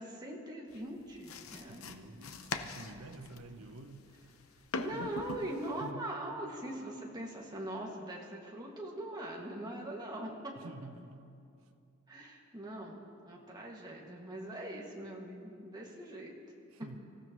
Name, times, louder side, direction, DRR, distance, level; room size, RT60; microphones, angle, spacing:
voice 1, 0.0-1.8 4.8-10.3 12.1-13.0 13.3-16.3, right 1 dB, 20° right, -2 dB, 2.0 m, -41 dB
sound 1, 0.7-5.9, left 4 dB, 85° left, 0.8 m, -43 dB
voice 2, 1.7-4.1 4.9-5.1 5.8-6.1 10.6-11.3 11.6-11.7 16.7-17.0, right 2 dB, 90° right, 7 dB, 1.0 m, -49 dB
25.5 x 15.0 x 3.1 m, 2.5 s
head